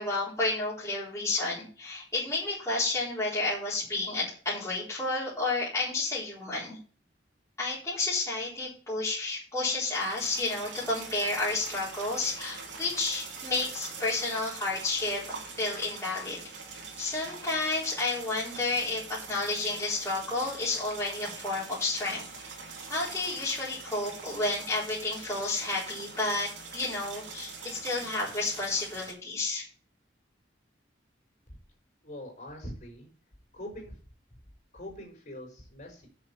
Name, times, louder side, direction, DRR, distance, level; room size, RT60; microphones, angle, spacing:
voice 1, 0.0-6.8 7.6-16.4 17.0-22.2 22.9-29.7, left 2 dB, 15° left, -8 dB, 4.2 m, -31 dB
sound 1, 9.8-29.1, right 4 dB, 75° right, 3.0 m, -43 dB
voice 2, 32.0-33.1 33.5-34.0 34.7-36.1, left 1 dB, 45° left, 0 dB, 5.1 m, -43 dB
7.7 x 7.2 x 7.1 m, 0.40 s
head